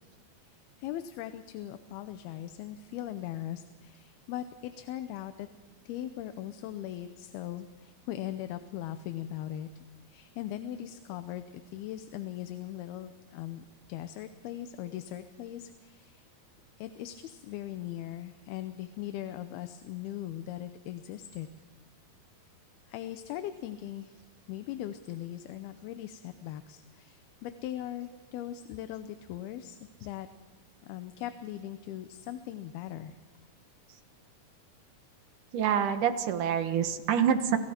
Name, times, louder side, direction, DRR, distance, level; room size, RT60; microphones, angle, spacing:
voice 1, 0.5-5.5 5.9-9.7 10.1-16.2 16.8-21.5 22.9-24.2 24.5-30.3 30.8-33.1, left 12 dB, 85° left, 9 dB, 2.8 m, -40 dB
voice 2, 35.5-37.6, right 8 dB, 65° right, 8 dB, 2.6 m, -26 dB
30.0 x 27.5 x 4.4 m, 1.2 s
omnidirectional pair, 4.4 m